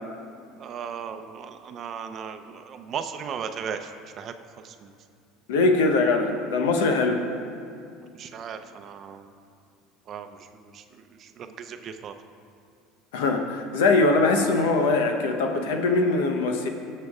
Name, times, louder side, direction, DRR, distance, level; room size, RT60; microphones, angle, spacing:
voice 1, 0.6-3.9 4.2-4.3 4.6-4.9 8.2-9.3 10.1-10.5 10.7-10.8 11.2-12.1, right 7 dB, 45° right, 7 dB, 0.6 m, -36 dB
voice 2, 5.5-7.2 13.1-16.7, left 3 dB, 85° left, 4 dB, 0.9 m, -22 dB
18.0 x 6.6 x 2.4 m, 2.4 s
supercardioid pair, 100°, 0 cm